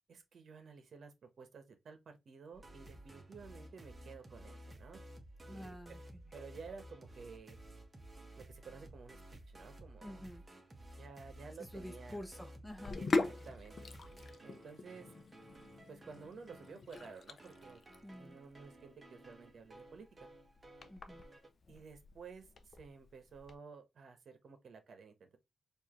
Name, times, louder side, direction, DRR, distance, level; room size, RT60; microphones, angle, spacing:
voice 1, 0.1-5.0 5.5-5.8 6.3-7.6 8.3-9.2 9.5-10.2 11.0-12.3 13.0-13.9 14.4-15.1 15.9-17.8 18.2-20.3 21.7-25.4, right 5 dB, 65° right, 1.0 m, -53 dB
sound 1, 2.5-21.5, right 1 dB, 25° right, 1.1 m, -55 dB
voice 2, 5.5-6.2 10.0-10.4 11.6-13.0 18.0-18.4 20.9-21.2, equal, 10° left, 0.9 m, -49 dB
Sink (filling or washing), 12.7-23.5, left 3 dB, 50° left, 0.5 m, -42 dB
4.5 x 2.6 x 3.0 m
cardioid pair, 100°, 0 cm